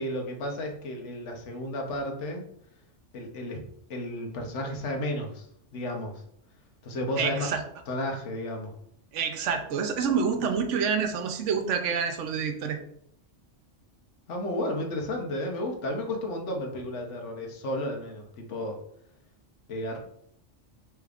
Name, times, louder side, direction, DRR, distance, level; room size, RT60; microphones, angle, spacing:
voice 1, 0.0-2.4 3.1-3.6 3.9-5.5 5.7-6.2 6.8-7.5 7.9-8.7 14.3-18.8 19.7-20.0, left 1 dB, 75° left, 2 dB, 1.2 m, -32 dB
voice 2, 7.2-7.6 9.1-12.8, right 6 dB, 85° right, 6 dB, 1.0 m, -27 dB
4.9 x 3.4 x 2.4 m, 0.68 s
omnidirectional pair, 1.2 m